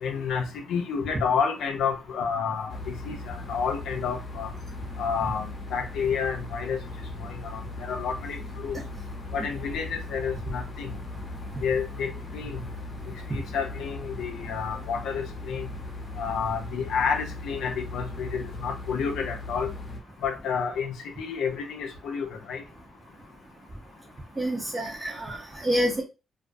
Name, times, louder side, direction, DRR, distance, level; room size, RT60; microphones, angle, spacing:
voice 1, 0.0-4.5 5.0-6.8 7.2-8.8 9.3-10.9 11.6-12.6 13.3-15.7 16.2-19.7 20.2-22.6, left 6 dB, 85° left, 0.4 m, -30 dB
sound 1, 2.7-20.0, left 2 dB, 40° left, 0.7 m, -38 dB
voice 2, 24.4-26.0, equal, 25° right, 0.6 m, -28 dB
2.3 x 2.2 x 2.5 m
cardioid pair, 70°, 0 cm